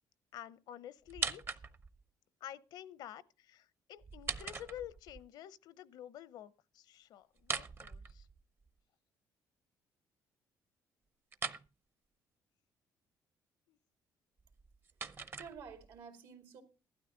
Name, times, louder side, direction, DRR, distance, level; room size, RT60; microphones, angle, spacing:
voice 1, 0.3-1.4 2.4-8.3 13.7-13.8, left 11 dB, 75° left, 0.7 m, -50 dB
sound 1, 1.1-2.0 4.0-5.2 7.4-8.7 11.3-11.7 14.4-16.0, right 5 dB, 30° right, 0.6 m, -41 dB
voice 2, 15.1-16.6, right 6 dB, 80° right, 2.4 m, -51 dB
15.0 x 12.5 x 3.8 m
cardioid pair, 125°, 7 cm